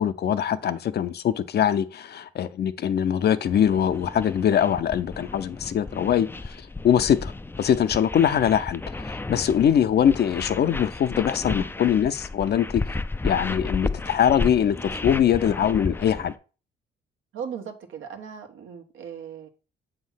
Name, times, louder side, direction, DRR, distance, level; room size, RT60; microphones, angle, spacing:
voice 1, 0.0-6.6 6.8-7.3 7.6-12.8 13.2-16.3, left 9 dB, 55° left, 0.6 m, -22 dB
sound 1, 3.5-16.3, left 3 dB, 10° left, 0.4 m, -33 dB
voice 2, 17.3-19.5, right 7 dB, 80° right, 1.3 m, -37 dB
7.2 x 3.2 x 5.7 m
cardioid pair, 90°, 20 cm